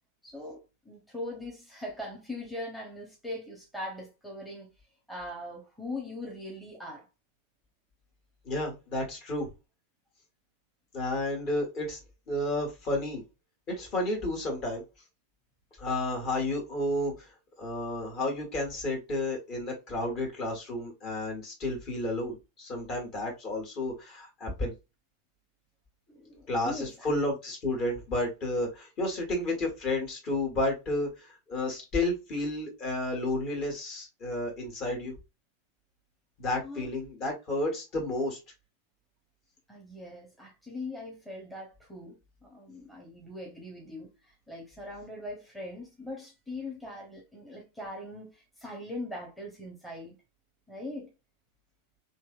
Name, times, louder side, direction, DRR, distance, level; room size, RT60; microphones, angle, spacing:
voice 1, 0.2-4.7 5.1-7.1 26.1-27.1 36.6-36.9 39.7-50.2 50.7-51.1, left 1 dB, 5° left, 0.9 m, -41 dB
voice 2, 8.4-9.5 10.9-12.0 12.3-13.2 13.7-14.8 15.8-17.3 17.6-24.7 26.5-35.2 36.4-38.4, left 2 dB, 35° left, 1.5 m, -31 dB
3.1 x 2.8 x 2.4 m
figure-of-eight pair, 90°, 0 cm